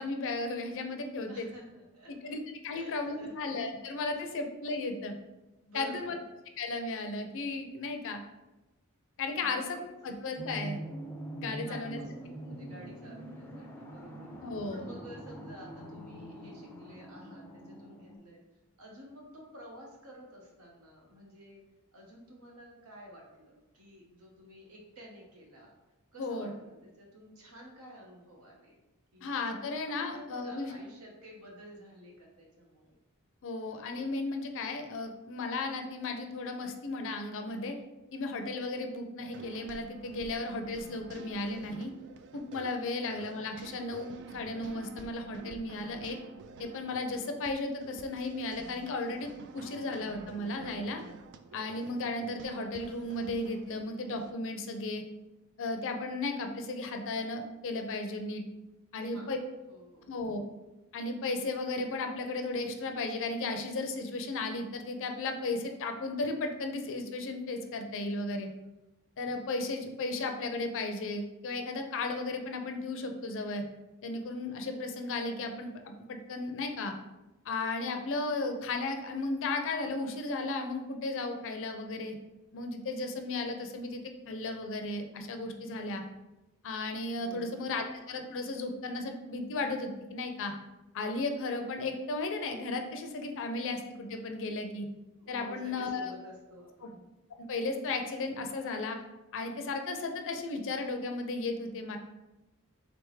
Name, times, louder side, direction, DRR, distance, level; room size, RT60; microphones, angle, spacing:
voice 1, 0.0-1.5 2.2-5.1 5.7-6.1 6.6-8.2 9.2-9.6 10.0-10.8 11.4-12.0 14.4-14.9 26.2-26.5 29.2-30.7 33.4-37.8 38.1-41.9 42.3-46.2 46.6-51.0 51.5-55.0 55.6-58.4 58.9-59.4 60.1-60.4 60.9-68.5 69.2-73.6 74.0-76.9 77.5-82.2 82.5-86.0 86.6-90.5 90.9-94.9 95.3-96.1 97.4-99.0 99.3-102.0, left 3 dB, 60° left, 5 dB, 0.5 m, -35 dB
voice 2, 1.3-2.1 2.7-3.5 5.6-6.2 9.4-9.9 11.6-14.3 14.7-18.4 18.8-21.6 21.9-25.7 26.1-28.8 29.1-33.0 42.9-43.3 59.0-59.3 59.7-60.1 87.2-87.7 95.2-97.0, equal, 70° right, -1 dB, 1.0 m, -51 dB
sound 1, 10.4-18.2, right 1 dB, 10° left, 0.5 m, -43 dB
sound 2, 39.2-54.3, right 5 dB, 50° right, 0.3 m, -49 dB
3.8 x 3.4 x 3.2 m, 1.0 s
head